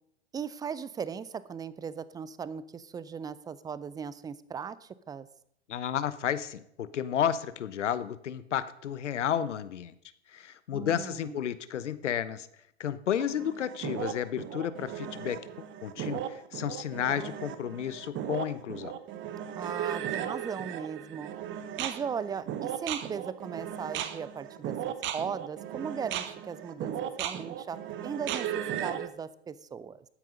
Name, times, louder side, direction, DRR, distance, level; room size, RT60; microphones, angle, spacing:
voice 1, 0.3-5.3 10.7-11.5 19.6-21.3 21.8-30.1, right 6 dB, 10° right, 17 dB, 0.4 m, -38 dB
voice 2, 5.7-9.9 10.3-12.5 12.8-18.9, left 9 dB, 80° left, 15 dB, 1.0 m, -32 dB
sound 1, 13.2-29.1, right 10 dB, 35° right, 1.1 m, -36 dB
13.5 x 9.3 x 5.1 m, 0.72 s
hypercardioid pair, 100°, 35 cm